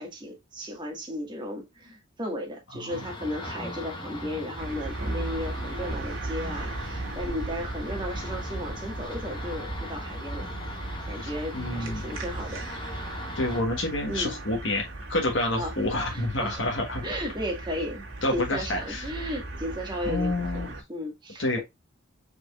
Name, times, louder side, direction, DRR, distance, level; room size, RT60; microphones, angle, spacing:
voice 1, 0.0-10.5 11.1-12.6 14.0-14.4 15.6-15.8 16.1-16.7 17.0-18.1 18.3-21.6, equal, 25° right, 1.9 m, -35 dB
sound 1, 2.9-13.6, left 1 dB, 25° left, 1.4 m, -40 dB
sound 2, 4.6-20.8, right 2 dB, 75° right, 2.1 m, -37 dB
voice 2, 11.2-12.1 13.3-17.0 18.2-19.1 20.0-20.7 21.4-21.6, left 1 dB, 65° left, 1.4 m, -28 dB
5.0 x 4.4 x 2.4 m
head